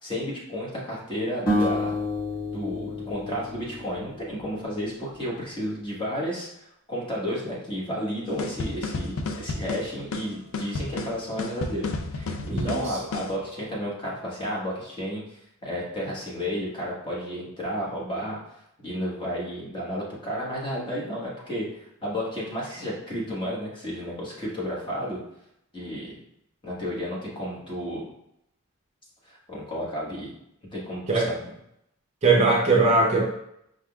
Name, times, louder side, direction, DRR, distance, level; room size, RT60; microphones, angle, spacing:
voice 1, 0.0-2.0 2.5-18.4 18.8-25.2 25.7-26.2 26.6-28.1 29.2-30.3 30.7-31.4, equal, 20° left, -5 dB, 1.2 m, -32 dB
sound 1, 1.5-4.6, left 1 dB, 40° left, 1.4 m, -29 dB
sound 2, 8.4-13.4, left 3 dB, 65° left, 0.4 m, -32 dB
voice 2, 12.5-12.9 31.1-31.3 32.2-33.2, right 3 dB, 30° right, -1 dB, 0.5 m, -20 dB
5.0 x 3.6 x 2.3 m, 0.79 s
head